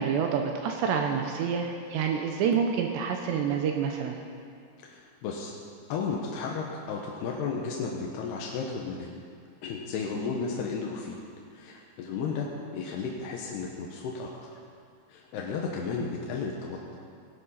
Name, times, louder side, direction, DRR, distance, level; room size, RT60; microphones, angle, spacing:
voice 1, 0.0-4.2, right 7 dB, 75° right, 3 dB, 2.9 m, -28 dB
voice 2, 4.8-5.5 5.9-9.1 9.6-11.2 11.5-12.5 12.7-14.3 15.1-16.8, left 5 dB, 70° left, -1 dB, 2.8 m, -33 dB
19.0 x 11.5 x 5.7 m, 2.3 s
omnidirectional pair, 5.6 m